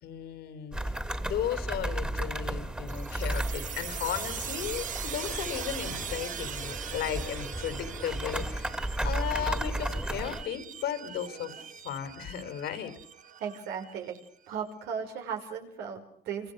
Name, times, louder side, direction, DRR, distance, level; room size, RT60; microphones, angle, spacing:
voice 1, 0.0-11.6 11.8-12.9, left 10 dB, 75° left, 9 dB, 3.7 m, -35 dB
sound 1, 0.7-10.4, right 1 dB, 5° right, 2.6 m, -34 dB
sound 2, 2.9-14.3, right 8 dB, 50° right, 1.6 m, -41 dB
voice 2, 13.4-14.2 14.5-16.5, right 7 dB, 85° right, 4 dB, 5.0 m, -36 dB
28.0 x 25.0 x 6.7 m, 0.66 s
cardioid pair, 110°, 17 cm